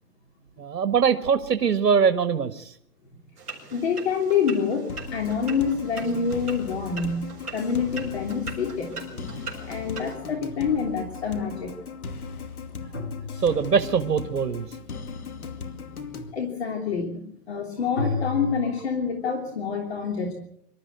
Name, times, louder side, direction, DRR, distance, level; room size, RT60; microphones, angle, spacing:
voice 1, 0.6-2.7 13.4-14.7, right 6 dB, 70° right, 9 dB, 1.8 m, -22 dB
sound 1, 3.4-10.2, right 4 dB, 15° right, 5.1 m, -41 dB
voice 2, 3.7-7.2 7.5-8.9 9.6-11.8 15.3-15.4 16.3-17.2 17.5-20.3, left 6 dB, 40° left, 2 dB, 3.2 m, -27 dB
sound 2, 4.9-16.3, left 5 dB, 65° left, 2.5 m, -38 dB
sound 3, 7.5-11.2 12.9-14.1 17.9-18.6, left 3 dB, 15° left, 1.0 m, -34 dB
25.5 x 13.0 x 8.1 m, 0.73 s
hypercardioid pair, 165°, 48 cm